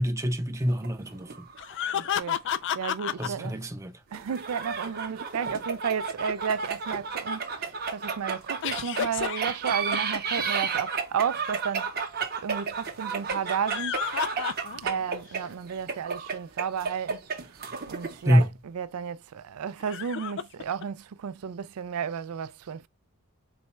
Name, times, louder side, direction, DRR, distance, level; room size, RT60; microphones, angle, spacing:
voice 1, 0.0-1.3 3.2-4.0 18.3-18.5, equal, 15° right, 0.5 m, -25 dB
sound 1, 0.7-2.1 2.5-2.6 4.1-18.4, right 5 dB, 45° right, 0.8 m, -32 dB
sound 2, 1.6-3.3 8.6-10.7 13.5-15.0 15.4-15.5 17.9-18.0 19.8-20.8, left 9 dB, 55° left, 0.3 m, -31 dB
voice 2, 1.9-2.4 2.7-3.6 4.1-11.9 12.4-14.0 14.7-22.9, right 7 dB, 80° right, 0.4 m, -33 dB
4.1 x 2.2 x 4.3 m
head